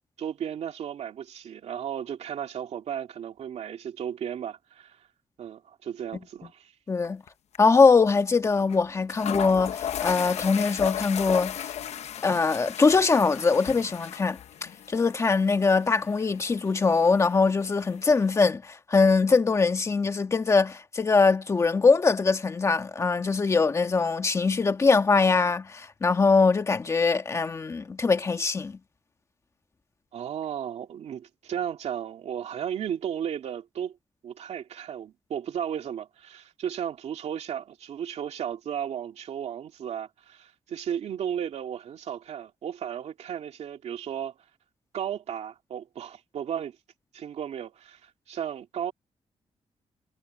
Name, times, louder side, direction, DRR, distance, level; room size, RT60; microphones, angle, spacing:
voice 1, 0.2-5.0 5.4-6.7 30.1-34.0 34.2-44.3 44.9-46.8 47.1-48.9, right 9 dB, 80° right, 2.4 m, -34 dB
voice 2, 6.9-7.2 7.6-11.7 12.2-14.4 14.9-28.8, left 4 dB, 25° left, 1.6 m, -22 dB
sound 1, 7.0-7.3 7.5-7.6 8.7-8.8 9.1-18.5, left 9 dB, 80° left, 0.9 m, -36 dB
wide cardioid pair, 180°, 11 cm